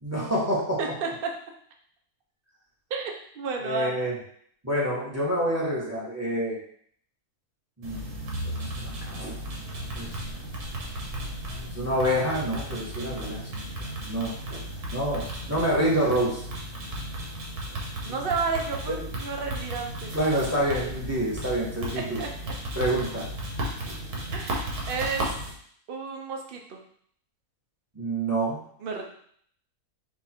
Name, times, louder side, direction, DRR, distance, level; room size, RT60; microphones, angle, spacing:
voice 1, 0.0-0.8 3.6-4.1 4.6-6.6 7.8-8.1 8.4-9.4 9.9-10.3 11.7-14.6 14.9-16.4 18.1-18.2 18.9-19.0 20.1-22.2 22.8-23.3 27.9-28.6, right 1 dB, 10° right, -5 dB, 1.0 m, -28 dB
voice 2, 0.8-1.3 2.9-3.9 13.1-13.5 18.0-20.1 22.0-22.5 24.3-25.3 25.9-26.8 28.8-29.0, right 4 dB, 50° right, 2 dB, 0.7 m, -32 dB
sound 1, 7.8-25.5, right 1 dB, 80° right, 1.6 m, -35 dB
4.7 x 2.6 x 4.3 m, 0.62 s
omnidirectional pair, 1.6 m